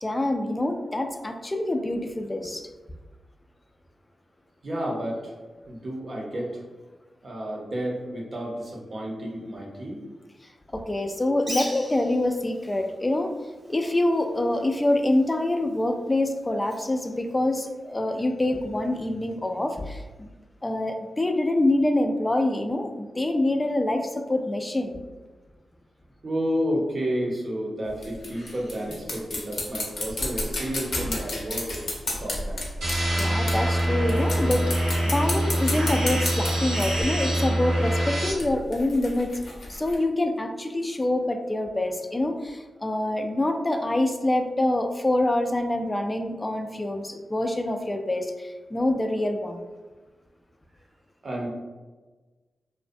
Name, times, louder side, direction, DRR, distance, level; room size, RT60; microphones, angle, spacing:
voice 1, 0.0-2.7 10.7-13.3 13.7-20.3 20.6-25.0 33.2-39.4 39.7-49.6, left 1 dB, 25° left, 5 dB, 0.3 m, -26 dB
voice 2, 4.6-5.3 5.6-6.6 7.2-10.0 26.2-31.8 32.2-32.6 51.2-51.5, equal, 55° right, -2 dB, 0.7 m, -31 dB
Bird, 11.3-18.0, equal, 10° right, 0.7 m, -42 dB
sound 1, 27.9-33.8 34.1-37.0 38.3-40.0, left 2 dB, 70° left, 0.6 m, -32 dB
sound 2, 32.8-38.3, right 1 dB, 85° right, 0.8 m, -25 dB
2.4 x 2.1 x 2.5 m, 1.3 s
cardioid pair, 50°, 0 cm